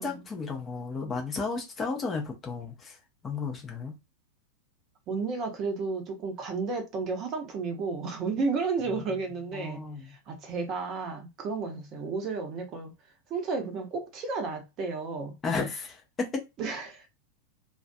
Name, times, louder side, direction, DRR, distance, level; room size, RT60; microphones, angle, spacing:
voice 1, 0.0-3.0 3.2-3.9 8.9-9.1 9.5-10.2 15.4-16.4, left 4 dB, 20° left, 0.7 m, -33 dB
voice 2, 5.1-12.9 13.3-15.4 16.6-17.1, right 4 dB, 35° right, 0.8 m, -32 dB
2.4 x 2.4 x 2.3 m
figure-of-eight pair, 90°, 0 cm